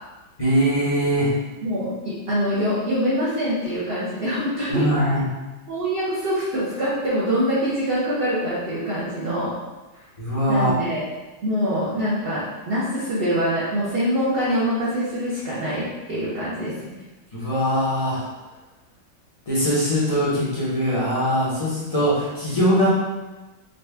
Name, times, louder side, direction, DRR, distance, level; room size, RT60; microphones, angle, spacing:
voice 1, 0.4-1.3 4.7-5.2 10.2-10.7 17.3-18.3 19.5-22.9, equal, 35° left, -9 dB, 0.5 m, -21 dB
voice 2, 1.6-4.9 5.7-9.5 10.5-11.0 11.4-16.9, equal, 55° right, -9 dB, 0.6 m, -24 dB
4.0 x 2.3 x 3.3 m, 1.2 s
omnidirectional pair, 2.0 m